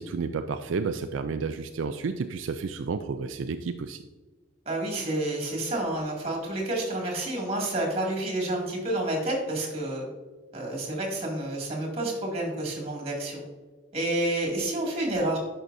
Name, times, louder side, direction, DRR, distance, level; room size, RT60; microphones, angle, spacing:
voice 1, 0.0-4.0, right 5 dB, 70° right, 8 dB, 0.4 m, -31 dB
voice 2, 4.7-10.1 10.5-13.4 13.9-15.4, right 1 dB, 30° right, -1 dB, 2.2 m, -29 dB
11.0 x 5.5 x 2.6 m, 1.4 s
head